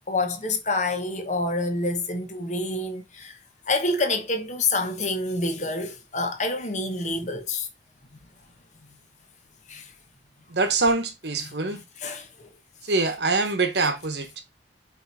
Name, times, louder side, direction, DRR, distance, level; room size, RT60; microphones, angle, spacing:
voice 1, 0.1-3.4 3.7-7.7 9.7-9.9 12.0-12.5, left 2 dB, 40° left, 1.2 m, -27 dB
voice 2, 10.5-11.8 12.8-14.4, right 3 dB, 65° right, 1.2 m, -24 dB
5.0 x 4.5 x 4.2 m
head